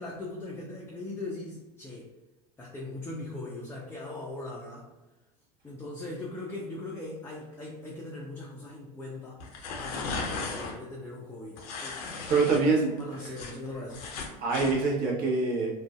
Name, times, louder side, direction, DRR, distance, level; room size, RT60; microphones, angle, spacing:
voice 1, 0.0-2.1 2.6-4.9 5.6-9.4 9.8-12.0 12.4-14.1, left 2 dB, 10° left, -4 dB, 0.4 m, -40 dB
sound 1, 9.4-10.7 11.6-12.6 13.0-14.8, left 4 dB, 65° left, 0.5 m, -36 dB
voice 2, 12.3-13.4 14.4-15.7, right 3 dB, 45° right, -2 dB, 0.8 m, -26 dB
2.4 x 2.1 x 2.4 m, 1.1 s
hypercardioid pair, 85°, 21 cm